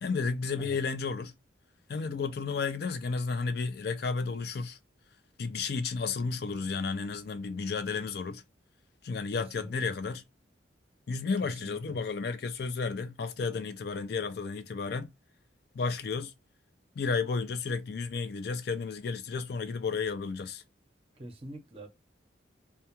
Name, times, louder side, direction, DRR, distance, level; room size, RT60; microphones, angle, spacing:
voice 1, 0.0-1.3 1.9-4.8 5.4-8.4 9.0-10.2 11.1-15.1 15.7-16.3 17.0-20.6, left 4 dB, 55° left, 0.4 m, -32 dB
voice 2, 9.4-9.9 11.4-11.9 21.2-21.9, right 1 dB, 30° right, 0.6 m, -45 dB
2.3 x 2.1 x 2.8 m
head